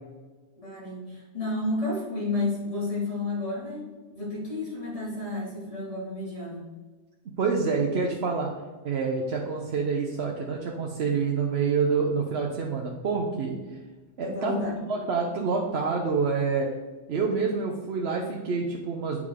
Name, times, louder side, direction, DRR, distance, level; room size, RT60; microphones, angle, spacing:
voice 1, 0.6-6.7 14.2-14.8, left 2 dB, 30° left, -6 dB, 2.6 m, -31 dB
voice 2, 7.4-8.5 8.8-13.6 14.2-14.6 14.9-16.7 17.1-19.2, right 5 dB, 75° right, 0 dB, 1.0 m, -27 dB
8.4 x 4.8 x 3.6 m, 1.3 s
omnidirectional pair, 1.1 m